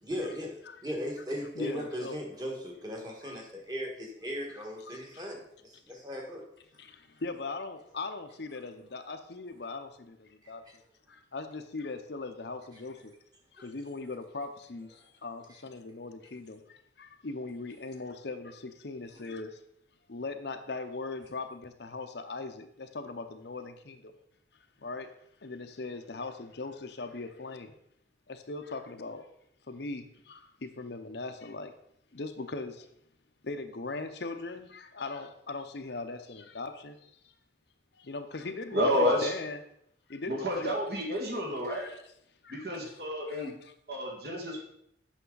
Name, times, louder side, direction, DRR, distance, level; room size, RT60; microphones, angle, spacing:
voice 1, 0.0-0.5 0.8-6.4 10.4-10.5 13.6-13.7, equal, 20° right, 0 dB, 1.6 m, -37 dB
voice 2, 1.5-2.2 3.2-3.4 4.9-5.2 6.7-10.6 11.1-13.1 13.5-19.6 20.1-24.1 24.8-25.1 25.4-27.7 28.3-29.3 29.7-31.7 32.1-32.9 33.4-37.3 37.9-39.6 40.1-40.7 41.6-42.0 42.4-43.7, left 3 dB, 60° left, 7 dB, 0.7 m, -40 dB
voice 3, 38.7-39.3 40.3-41.9 42.5-43.5 43.9-44.6, equal, 55° right, 0 dB, 1.8 m, -30 dB
8.4 x 6.2 x 3.9 m, 0.74 s
head